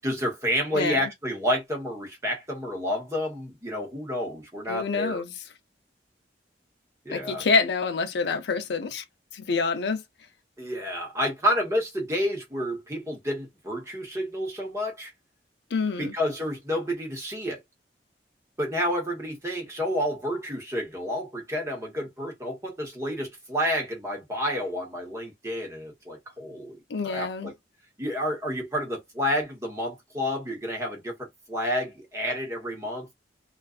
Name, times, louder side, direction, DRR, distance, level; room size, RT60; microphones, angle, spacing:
voice 1, 0.0-5.2 7.0-7.4 10.6-15.1 16.0-17.6 18.6-27.5 28.0-33.1, equal, 15° right, 1.1 m, -30 dB
voice 2, 0.7-1.1 4.7-5.3 7.1-9.0 9.3-10.0 15.7-16.1 26.9-27.5, left 4 dB, 70° left, 0.5 m, -27 dB
2.4 x 2.4 x 2.4 m
head